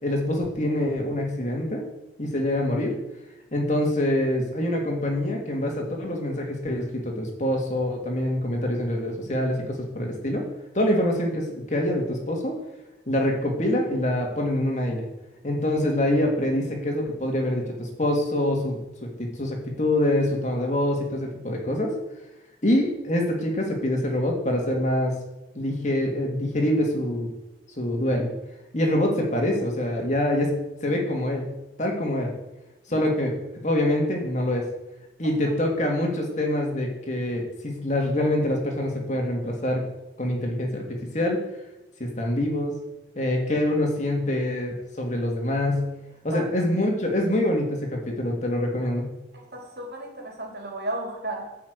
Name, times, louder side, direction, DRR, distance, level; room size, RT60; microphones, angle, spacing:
voice 1, 0.0-1.8 2.2-2.9 3.5-10.4 10.7-12.6 13.1-15.1 15.4-21.9 22.6-25.1 25.5-27.3 27.8-28.3 28.7-31.4 31.8-32.3 32.9-33.3 33.6-34.7 35.2-39.8 40.2-41.4 42.0-42.8 43.2-45.9 46.2-49.1, left 1 dB, 40° left, 2.5 m, -25 dB
voice 2, 49.3-51.6, right 1 dB, 65° right, 3.3 m, -34 dB
13.0 x 6.0 x 8.2 m
head